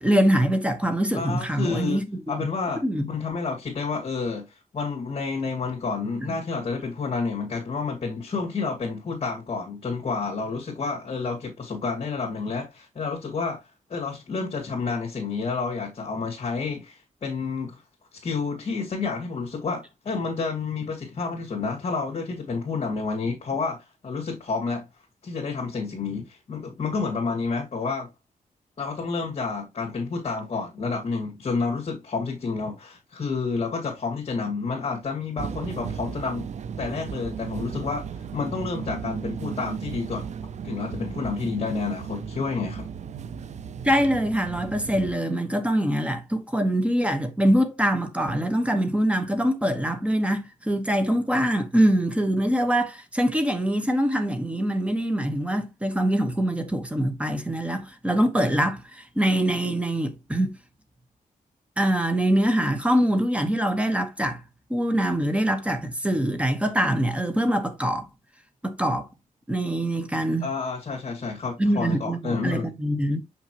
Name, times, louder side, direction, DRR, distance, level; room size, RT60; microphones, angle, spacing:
voice 1, 0.0-2.5 2.8-3.1 43.8-60.6 61.8-64.4 64.7-68.1 68.6-69.1 69.5-70.5 71.6-73.2, right 1 dB, 10° right, 1.2 m, -24 dB
voice 2, 1.1-2.0 2.3-13.6 13.9-17.8 18.1-24.9 25.2-28.1 28.8-36.5 36.8-40.3 40.6-42.9 70.4-72.7, left 4 dB, 45° left, 2.2 m, -30 dB
sound 1, 35.4-45.1, right 7 dB, 55° right, 0.5 m, -35 dB
6.5 x 5.9 x 2.9 m
wide cardioid pair, 160°, 14 cm